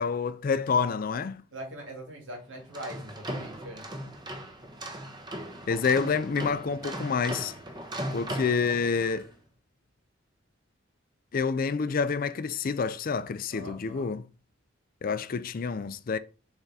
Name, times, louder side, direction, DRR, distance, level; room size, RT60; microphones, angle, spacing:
voice 1, 0.0-1.4 5.7-7.5 8.1-9.3 11.3-14.3 15.0-16.2, left 5 dB, 45° left, 0.4 m, -28 dB
voice 2, 1.5-3.8 13.5-14.1, right 1 dB, 75° right, 2.4 m, -42 dB
sound 1, 2.6-9.3, right 1 dB, 20° right, 0.9 m, -38 dB
7.2 x 3.5 x 4.1 m
head